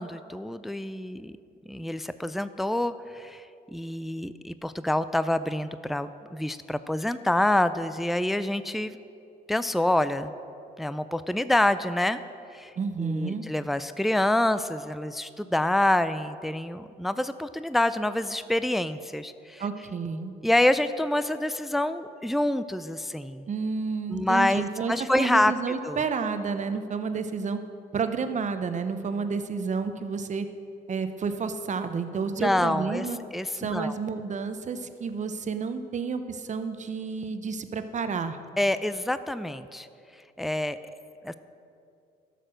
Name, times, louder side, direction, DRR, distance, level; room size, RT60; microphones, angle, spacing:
voice 1, 0.0-1.4 1.7-9.0 9.5-10.3 10.8-12.2 12.5-12.7 13.0-19.6 20.4-23.5 24.1-25.5 25.8-26.0 32.4-33.1 33.3-34.0 38.6-39.9 40.4-40.8 41.2-41.3, left 1 dB, ahead, 13 dB, 0.4 m, -27 dB
voice 2, 12.8-13.4 19.6-20.3 23.5-27.6 27.9-30.5 30.9-33.2 33.5-38.4, right 5 dB, 40° right, 9 dB, 0.8 m, -30 dB
12.0 x 6.8 x 6.3 m, 2.5 s
supercardioid pair, 75°, 18 cm